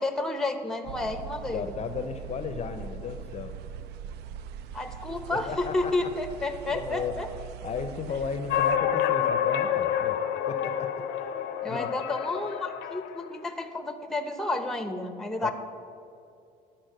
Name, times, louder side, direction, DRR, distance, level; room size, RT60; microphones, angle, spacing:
voice 1, 0.0-1.7 4.7-7.3 11.6-15.5, left 2 dB, 5° left, 7 dB, 0.7 m, -31 dB
sound 1, 0.8-8.8, right 8 dB, 75° right, 0.4 m, -41 dB
voice 2, 1.5-3.5 5.3-6.1 6.7-7.1 7.6-10.2 10.5-12.0 15.4-15.5, left 6 dB, 40° left, 9 dB, 0.5 m, -35 dB
sound 2, 8.5-13.3, left 9 dB, 90° left, 0.5 m, -28 dB
10.5 x 4.3 x 6.5 m, 2.6 s
cardioid pair, 110°, 17 cm